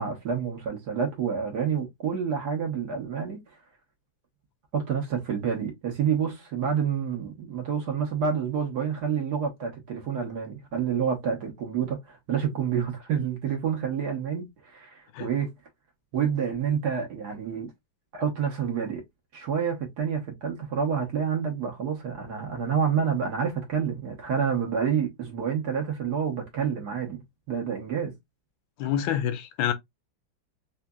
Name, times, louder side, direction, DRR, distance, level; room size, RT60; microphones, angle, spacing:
voice 1, 0.0-3.4 4.7-15.5 16.1-17.7 18.1-19.0 19.3-27.2 27.5-28.1, right 7 dB, 60° right, 1.3 m, -28 dB
voice 2, 28.8-29.7, left 10 dB, 80° left, 1.3 m, -27 dB
3.7 x 3.1 x 2.2 m
omnidirectional pair, 2.3 m